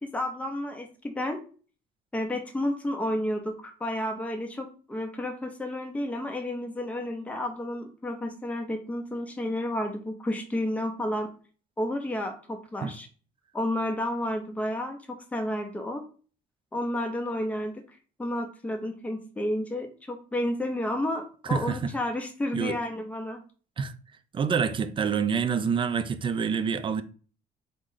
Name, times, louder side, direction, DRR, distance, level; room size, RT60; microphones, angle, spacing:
voice 1, 0.0-1.4 2.1-11.3 11.8-13.1 13.5-16.0 16.7-17.8 18.2-23.4, left 1 dB, 10° left, 0.6 m, -31 dB
voice 2, 21.5-21.9 22.5-22.8 23.8-23.9 24.3-27.0, right 6 dB, 30° right, 0.4 m, -27 dB
4.4 x 2.1 x 3.8 m
cardioid pair, 110°, 17 cm